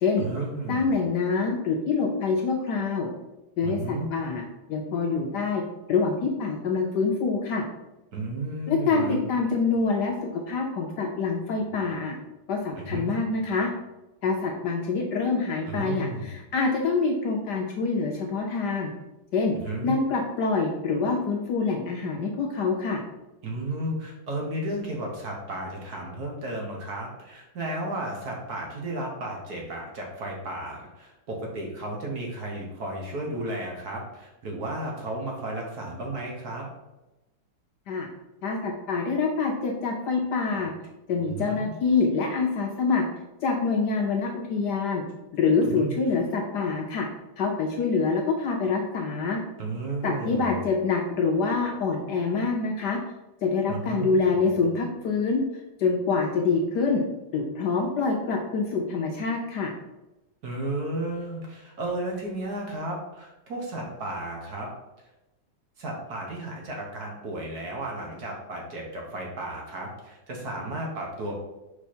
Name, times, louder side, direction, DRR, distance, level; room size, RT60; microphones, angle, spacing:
voice 1, 0.2-0.9 3.6-4.1 8.1-9.3 12.8-13.1 15.6-16.3 19.5-20.0 23.4-36.7 41.3-41.7 45.7-45.9 49.6-50.6 53.7-54.1 60.4-64.7 65.8-71.3, right 1 dB, 55° right, -1 dB, 1.5 m, -33 dB
voice 2, 0.7-3.1 3.6-4.4 4.7-5.6 5.9-7.6 8.7-12.2 12.5-13.7 14.2-18.9 19.3-19.6 19.8-23.0 37.9-38.1 38.4-40.7 41.1-43.0 43.4-45.0 45.3-47.1 47.4-49.4 50.0-53.0 53.4-57.0 57.3-59.7, left 4 dB, 70° left, 1 dB, 1.1 m, -26 dB
4.9 x 4.5 x 4.3 m, 0.99 s
omnidirectional pair, 2.3 m